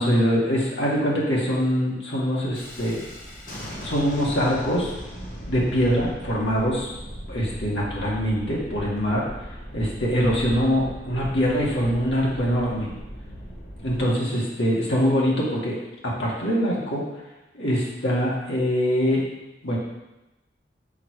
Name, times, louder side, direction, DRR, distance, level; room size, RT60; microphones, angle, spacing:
voice 1, 0.0-3.1 3.8-4.9 5.5-6.9 7.3-9.2 9.7-12.9 13.8-15.8 16.0-17.0 17.5-19.2 19.6-19.8, equal, 85° left, -5 dB, 2.1 m, -23 dB
Thunderstorm, 2.5-14.1, equal, 45° left, 1.5 m, -38 dB
7.1 x 4.9 x 4.8 m, 1.0 s
head